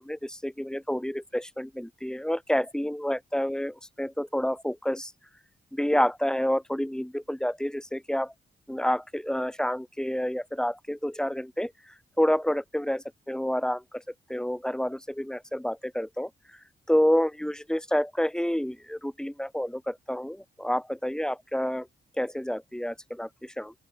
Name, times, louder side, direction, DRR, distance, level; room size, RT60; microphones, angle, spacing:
voice 1, 0.0-5.1 5.7-8.3 8.7-14.0 14.3-16.3 16.9-21.9 22.2-23.7, equal, 5° left, 5.7 m, -29 dB
open air
cardioid pair, 75°, 19 cm